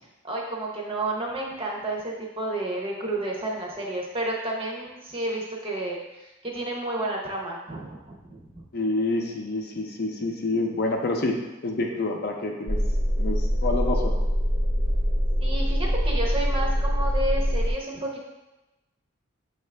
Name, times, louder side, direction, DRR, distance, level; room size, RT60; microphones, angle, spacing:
voice 1, 0.2-8.7 15.4-18.3, right 2 dB, 25° right, -2 dB, 0.7 m, -31 dB
voice 2, 8.7-11.3 11.6-12.8 13.2-14.1, left 2 dB, 50° left, 2 dB, 0.5 m, -27 dB
sound 1, 12.7-17.7, equal, 20° left, 0.8 m, -24 dB
6.3 x 2.5 x 3.3 m, 1.0 s
head